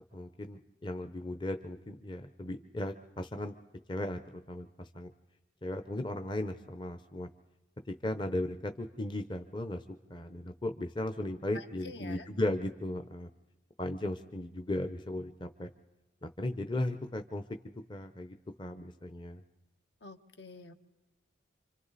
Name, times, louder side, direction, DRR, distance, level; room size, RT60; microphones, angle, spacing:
voice 1, 0.1-3.5 3.9-5.1 5.6-7.3 7.9-9.8 10.1-13.3 13.8-15.7 16.2-17.4 17.9-19.4, left 1 dB, 25° left, 7 dB, 0.7 m, -36 dB
voice 2, 11.5-12.3 20.0-20.7, left 3 dB, 65° left, 7 dB, 1.4 m, -47 dB
27.5 x 26.0 x 4.1 m, 1.1 s
head